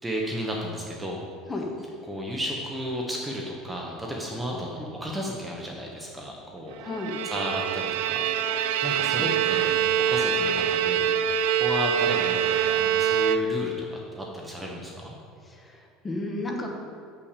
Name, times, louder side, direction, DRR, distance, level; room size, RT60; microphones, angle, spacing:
voice 1, 0.0-1.2 2.1-6.8 7.2-8.3 8.8-11.1 11.6-15.1, equal, 5° right, -1 dB, 0.8 m, -33 dB
voice 2, 6.8-7.1 9.2-9.3 15.4-16.8, left 2 dB, 15° left, 1 dB, 1.0 m, -33 dB
Bowed string instrument, 6.9-13.8, right 8 dB, 85° right, 0.4 m, -25 dB
6.9 x 5.7 x 6.7 m, 2.3 s
cardioid pair, 155°, 0 cm